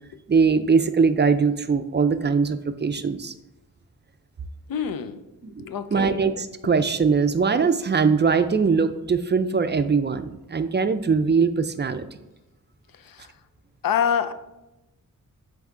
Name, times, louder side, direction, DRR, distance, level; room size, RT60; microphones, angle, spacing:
voice 1, 0.3-3.3 5.5-5.6 5.9-12.1, right 5 dB, 35° right, 10 dB, 0.4 m, -21 dB
voice 2, 4.7-5.2 5.6-6.2 12.9-13.3 13.8-14.3, left 8 dB, 90° left, 11 dB, 0.5 m, -26 dB
7.9 x 4.1 x 3.6 m, 0.97 s
wide cardioid pair, 120°, 34 cm